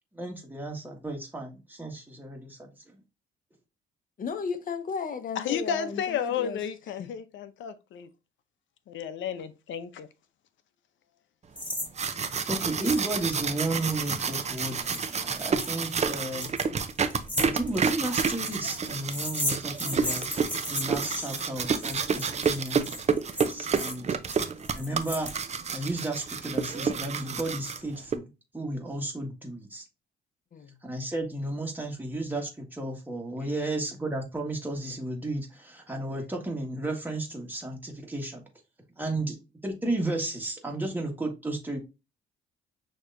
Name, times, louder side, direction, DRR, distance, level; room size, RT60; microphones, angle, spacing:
voice 1, 0.1-2.7 12.5-16.5 17.4-20.4 20.7-22.9 23.5-24.1 24.7-25.3 25.7-28.3 28.5-29.8 30.8-38.4 39.0-39.3 39.6-41.8, right 2 dB, 10° right, 1.5 m, -33 dB
voice 2, 4.2-6.6 7.0-7.1 30.5-30.8 33.4-33.6, left 5 dB, 45° left, 0.9 m, -35 dB
voice 3, 5.4-8.1 8.9-10.1, left 8 dB, 75° left, 0.7 m, -32 dB
sound 1, 11.6-11.9 12.1-12.2 12.8-13.1 13.4-25.8, left 1 dB, 10° left, 1.4 m, -36 dB
sound 2, 11.7-28.2, right 6 dB, 35° right, 0.6 m, -29 dB
6.3 x 2.9 x 2.6 m
cardioid pair, 90°, 20 cm